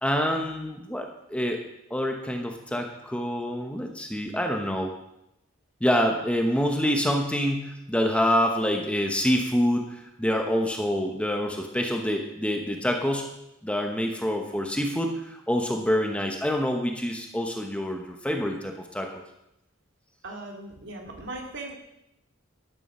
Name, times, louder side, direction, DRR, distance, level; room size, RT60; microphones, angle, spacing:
voice 1, 0.0-1.6 1.9-4.9 5.8-13.3 13.6-19.2, equal, 5° left, 3 dB, 1.0 m, -26 dB
voice 2, 20.2-21.7, right 2 dB, 60° right, 1 dB, 2.4 m, -38 dB
11.5 x 9.2 x 5.6 m, 0.85 s
head